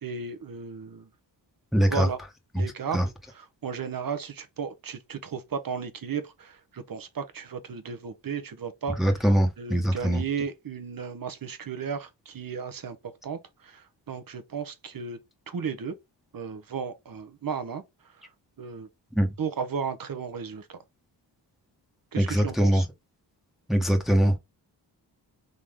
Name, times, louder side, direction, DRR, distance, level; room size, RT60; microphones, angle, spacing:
voice 1, 0.0-1.1 1.8-2.2 2.5-3.0 3.3-9.0 9.6-13.0 13.2-15.2 15.5-15.9 16.3-17.8 18.6-18.9 19.4-20.8 22.1-22.9, right 6 dB, 50° right, 1.2 m, -34 dB
voice 2, 1.7-2.1 2.5-2.6 2.9-3.0 9.0-10.2 19.2-19.3 22.2-22.8 23.7-24.4, equal, ahead, 1.2 m, -22 dB
3.9 x 3.1 x 3.7 m
supercardioid pair, 55°, 45 cm